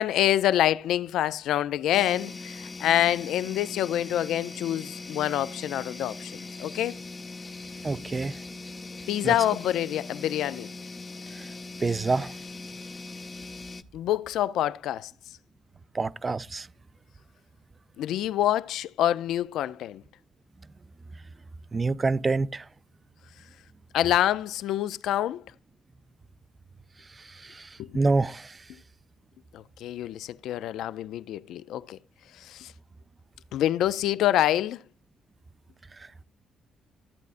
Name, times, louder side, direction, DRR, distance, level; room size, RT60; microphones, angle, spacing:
voice 1, 0.0-7.0 9.1-10.7 13.9-15.1 18.0-20.0 23.9-25.4 27.8-28.0 29.5-32.0 32.4-32.7 33.5-34.8, left 12 dB, 80° left, 0.3 m, -26 dB
sound 1, 1.9-13.8, left 3 dB, 30° left, 0.6 m, -40 dB
voice 2, 7.8-8.4 9.2-9.3 11.3-11.5 11.8-12.4 15.9-16.7 21.7-22.7 27.2-28.6 36.0-36.2, right 3 dB, 30° right, 0.4 m, -28 dB
14.0 x 8.2 x 2.5 m
cardioid pair, 90°, 0 cm